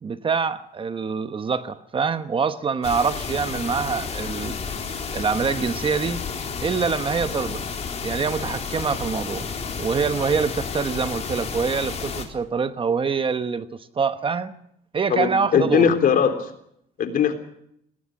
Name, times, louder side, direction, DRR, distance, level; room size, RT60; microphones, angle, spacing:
voice 1, 0.0-4.5 5.1-6.2 6.6-7.6 8.0-9.5 9.8-13.7 13.9-14.5 14.9-16.0, right 5 dB, 30° right, 1.1 m, -25 dB
sound 1, 2.8-12.2, left 5 dB, 40° left, 3.8 m, -31 dB
voice 2, 15.1-16.3 17.0-17.4, left 7 dB, 55° left, 3.6 m, -19 dB
19.0 x 18.5 x 7.7 m
cardioid pair, 110°, 17 cm